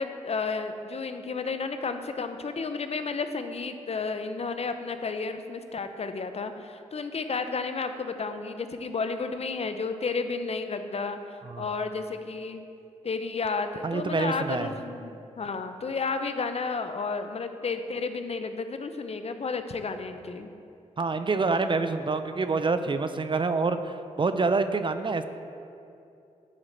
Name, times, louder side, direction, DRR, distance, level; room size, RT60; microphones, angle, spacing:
voice 1, 0.0-11.2 11.6-12.6 13.0-20.5, left 4 dB, 50° left, 8 dB, 0.6 m, -32 dB
voice 2, 13.8-14.7 21.0-25.2, right 4 dB, 40° right, 10 dB, 0.5 m, -27 dB
9.8 x 4.9 x 4.3 m, 2.6 s
supercardioid pair, 40°, 14 cm